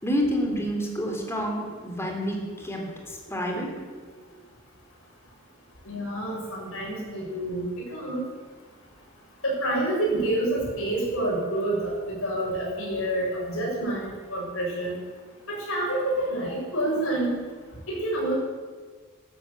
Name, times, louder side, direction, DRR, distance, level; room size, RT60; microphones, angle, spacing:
voice 1, 0.0-3.7, equal, 10° left, 1 dB, 3.3 m, -29 dB
voice 2, 5.8-7.6 7.9-8.2 9.4-15.0 15.5-17.4 17.9-18.4, right 1 dB, 70° left, -3 dB, 6.6 m, -28 dB
13.0 x 12.5 x 8.3 m, 1.5 s
head